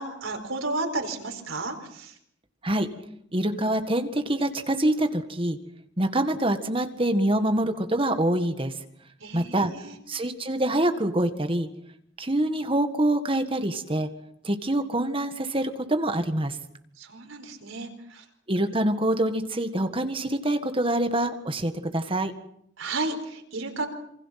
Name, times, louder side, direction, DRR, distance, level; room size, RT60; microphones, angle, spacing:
voice 1, 0.0-2.1 9.2-10.0 17.0-18.2 22.8-23.9, right 2 dB, 85° right, 4 dB, 4.8 m, -33 dB
voice 2, 3.3-5.6 6.0-8.8 9.3-9.7 10.1-11.7 12.2-14.1 14.4-16.6 18.5-22.3, right 1 dB, 25° right, 7 dB, 1.8 m, -25 dB
27.5 x 25.0 x 5.9 m, 0.72 s
head